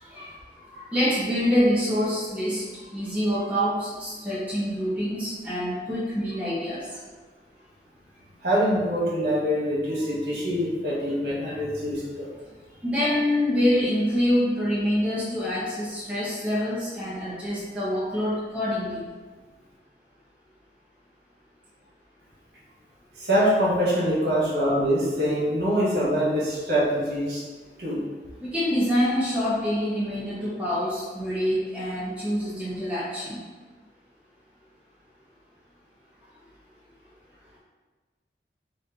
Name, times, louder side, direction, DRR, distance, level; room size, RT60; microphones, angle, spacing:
voice 1, 0.0-0.4 0.7-2.6 2.9-6.8 12.8-19.0 28.4-33.4, equal, 5° right, -9 dB, 0.9 m, -26 dB
voice 2, 8.4-12.3 23.2-27.4 27.8-28.0, equal, 65° right, -7 dB, 1.5 m, -24 dB
4.2 x 2.6 x 3.8 m, 1.3 s
head